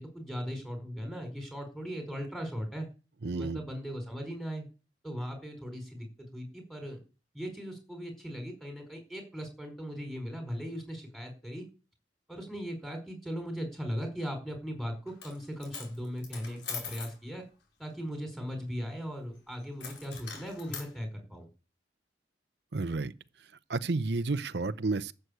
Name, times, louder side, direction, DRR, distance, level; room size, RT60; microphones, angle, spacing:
voice 1, 0.0-2.9 3.3-4.7 5.0-7.0 7.3-11.7 12.3-17.4 17.8-21.5, equal, ahead, 4.8 m, -38 dB
voice 2, 3.2-3.6 22.7-23.1 23.7-25.1, right 3 dB, 65° right, 0.7 m, -31 dB
Coin (dropping), 15.1-15.4 15.6-17.2 19.8-20.9, left 6 dB, 80° left, 5.1 m, -42 dB
12.5 x 8.0 x 8.2 m
head